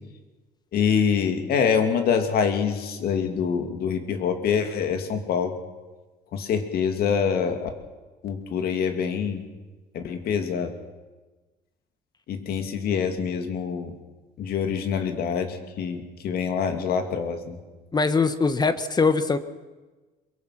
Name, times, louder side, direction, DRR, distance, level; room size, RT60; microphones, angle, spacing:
voice 1, 0.7-5.5 6.3-7.7 8.2-9.4 9.9-10.7 12.3-13.9 14.4-17.6, left 7 dB, 65° left, 6 dB, 2.7 m, -25 dB
voice 2, 17.9-19.4, left 4 dB, 25° left, 11 dB, 1.2 m, -22 dB
23.0 x 22.5 x 6.0 m, 1.2 s
cardioid pair, 110°, 17 cm